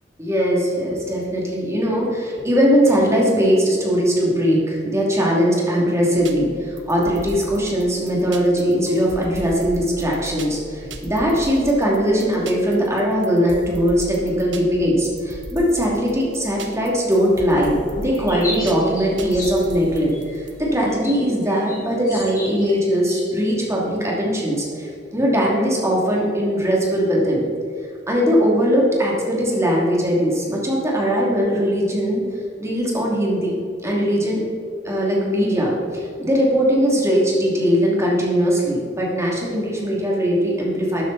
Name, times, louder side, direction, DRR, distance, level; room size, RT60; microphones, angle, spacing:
voice 1, 0.2-27.4 28.1-32.2 32.6-34.4 34.8-41.0, equal, 15° right, -4 dB, 2.8 m, -20 dB
sound 1, 6.2-20.6, right 2 dB, 75° right, 1.1 m, -37 dB
sound 2, 18.1-23.5, left 2 dB, 20° left, 3.2 m, -35 dB
13.0 x 9.4 x 4.2 m, 2.3 s
head